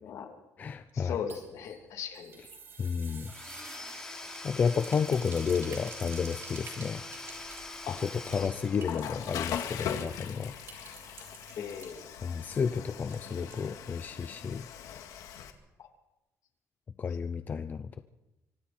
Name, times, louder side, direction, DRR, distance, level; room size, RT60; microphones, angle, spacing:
voice 1, 0.0-0.3 0.9-2.4 7.9-8.0 8.3-8.5 11.6-12.3 15.8-15.9, left 7 dB, 65° left, 4 dB, 2.9 m, -39 dB
voice 2, 0.6-1.2 2.8-3.3 4.4-7.0 8.0-10.5 12.2-14.6 17.0-18.0, left 6 dB, 30° left, 10 dB, 0.6 m, -31 dB
sound 1, 1.1-14.0 14.3-14.4 14.7-14.8, right 4 dB, 45° right, 6.5 m, -51 dB
Domestic sounds home sounds / Tools, 3.3-9.4, left 2 dB, 10° left, 3.1 m, -44 dB
Water / Toilet flush, 7.1-15.5, left 9 dB, 85° left, 2.1 m, -41 dB
25.0 x 24.5 x 4.4 m, 1.0 s
cardioid pair, 170°, 6 cm